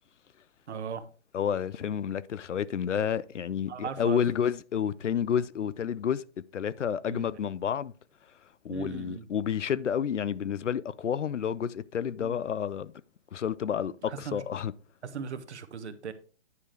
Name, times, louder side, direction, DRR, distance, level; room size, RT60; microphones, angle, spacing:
voice 1, 0.7-1.0 3.7-4.2 7.1-7.3 8.7-9.3 12.2-12.4 14.1-14.4 15.0-16.1, right 6 dB, 70° right, 1.3 m, -38 dB
voice 2, 1.3-6.2 6.5-7.9 8.6-12.9 13.3-14.7, left 8 dB, 85° left, 0.6 m, -30 dB
9.7 x 4.9 x 4.5 m
hypercardioid pair, 135°, 35 cm